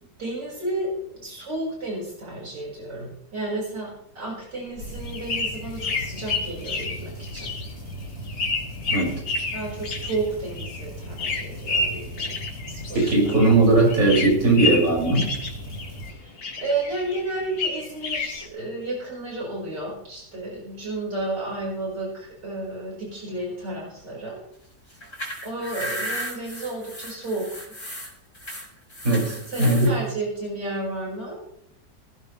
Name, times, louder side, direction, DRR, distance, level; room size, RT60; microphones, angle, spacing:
voice 1, 0.2-7.5 9.5-12.3 12.7-13.3 16.1-24.4 25.4-27.6 29.5-31.4, right 2 dB, 70° right, -3 dB, 5.8 m, -32 dB
sound 1, 4.6-13.6 13.9-16.1 16.4-18.4, left 3 dB, 90° left, 2.5 m, -30 dB
sound 2, 4.8-16.1, equal, 90° right, 6.6 m, -38 dB
voice 2, 12.9-15.3 29.0-29.9, right 2 dB, 50° right, -3 dB, 6.4 m, -19 dB
sound 3, 24.9-29.9, equal, 30° left, 4.5 m, -35 dB
18.5 x 15.0 x 3.2 m, 0.70 s
omnidirectional pair, 1.9 m